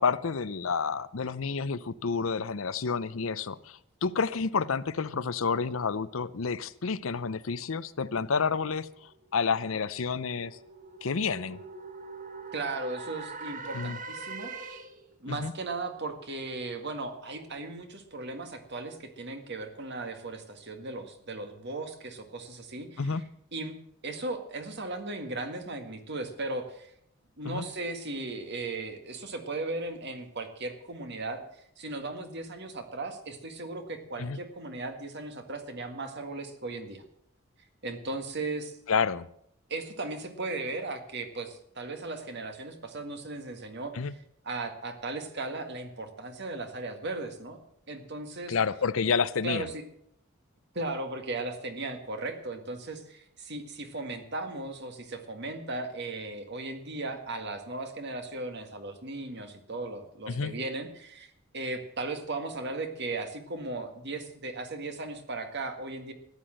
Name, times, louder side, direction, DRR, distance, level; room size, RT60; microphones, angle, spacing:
voice 1, 0.0-10.6 11.0-11.6 13.7-14.0 15.3-15.5 23.0-23.2 27.4-27.6 34.2-34.4 38.9-39.3 43.9-44.1 48.5-49.7 60.3-60.5, left 5 dB, 75° left, 16 dB, 0.7 m, -29 dB
sound 1, 9.0-15.1, right 4 dB, 40° right, 1.2 m, -43 dB
voice 2, 12.5-14.8 15.2-23.2 23.5-23.7 24.0-26.9 27.4-31.4 31.8-37.0 37.8-38.8 39.7-44.2 44.4-47.6 47.9-48.6 49.4-49.8 50.7-66.1, right 2 dB, 55° right, 7 dB, 1.9 m, -37 dB
14.0 x 9.9 x 7.7 m, 0.72 s
head